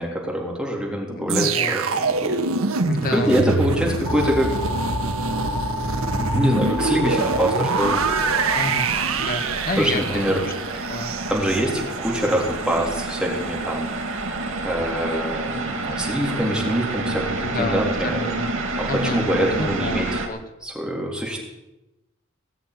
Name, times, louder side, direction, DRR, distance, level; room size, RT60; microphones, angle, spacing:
voice 1, 0.0-2.4 3.0-4.5 6.2-8.0 9.8-10.4 11.3-14.2 14.6-18.3 18.7-20.2 20.6-21.4, equal, 5° right, -2 dB, 3.7 m, -24 dB
voice 2, 1.1-1.7 2.9-3.4 8.5-8.9 9.2-10.4 10.9-11.1 17.4-18.5 18.9-19.3 19.6-20.4, left 2 dB, 45° left, 5 dB, 2.1 m, -29 dB
sound 1, 1.3-12.4 12.7-12.9, right 4 dB, 85° right, 1.3 m, -25 dB
sound 2, 4.1-8.8, left 2 dB, 20° left, 1.8 m, -30 dB
sound 3, 7.7-20.3, right 2 dB, 65° right, 2.6 m, -29 dB
19.5 x 7.2 x 9.8 m, 0.97 s
head